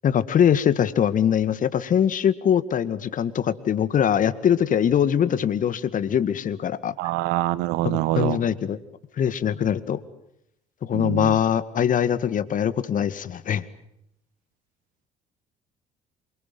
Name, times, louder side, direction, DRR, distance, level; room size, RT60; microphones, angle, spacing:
voice 1, 0.0-7.0 7.8-8.8 9.2-10.0 10.8-13.7, left 9 dB, 50° left, 14 dB, 2.1 m, -22 dB
voice 2, 7.0-8.4 10.9-11.4, right 16 dB, 75° right, 18 dB, 1.3 m, -25 dB
28.0 x 24.5 x 7.8 m, 0.80 s
hypercardioid pair, 60°, 17 cm